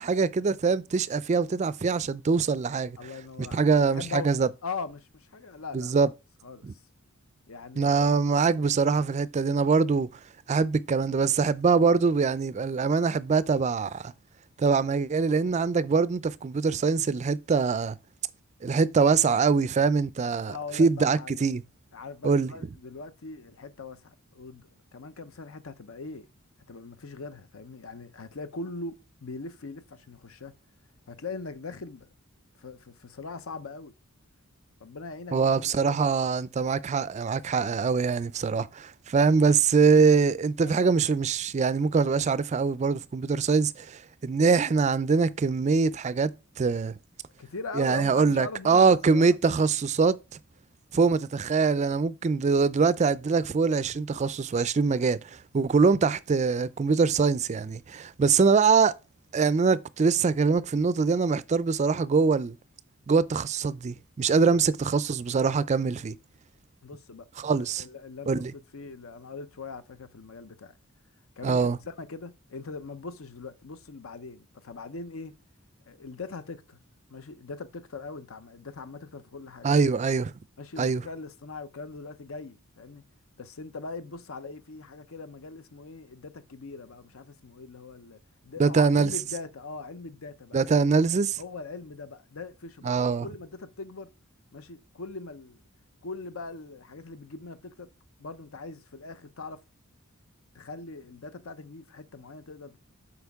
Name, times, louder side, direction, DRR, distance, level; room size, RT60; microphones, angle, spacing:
voice 1, 0.0-3.0 3.4-4.5 5.7-6.1 6.6-6.7 7.8-10.1 10.5-14.1 14.6-18.0 18.6-21.6 22.2-22.5 35.3-46.3 46.6-46.9 47.7-50.2 50.9-59.0 59.3-62.6 63.1-66.2 67.4-67.8 68.3-68.5 71.4-71.8 79.6-80.3 80.8-81.0 88.6-89.1 90.5-91.4 92.8-93.3, right 5 dB, 30° right, 0.4 m, -23 dB
voice 2, 3.0-4.3 4.6-6.1 6.4-6.7 7.5-8.1 20.5-21.4 21.9-26.3 26.7-30.6 31.1-32.1 32.6-33.9 34.8-36.1 40.6-40.7 47.4-49.4 64.5-64.6 66.8-67.3 67.6-70.7 71.4-75.4 75.9-76.8 77.1-79.7 80.6-83.1 83.4-90.6 91.4-94.1 94.5-95.6 96.0-97.9 98.2-99.6 100.5-102.8, left 4 dB, 70° left, 0.7 m, -41 dB
8.1 x 5.0 x 3.5 m
head